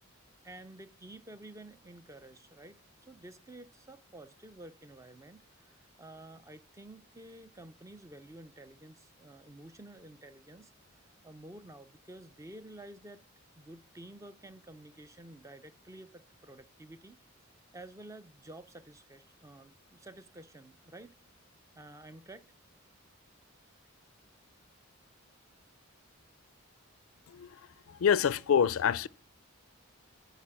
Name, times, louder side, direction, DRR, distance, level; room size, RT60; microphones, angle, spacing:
voice 1, 0.4-13.2 13.6-17.2 17.7-21.2 21.8-22.5, right 1 dB, 15° right, 0.4 m, -51 dB
voice 2, 27.3-27.6 27.9-29.1, left 8 dB, 75° left, 0.4 m, -26 dB
10.0 x 4.1 x 7.5 m
head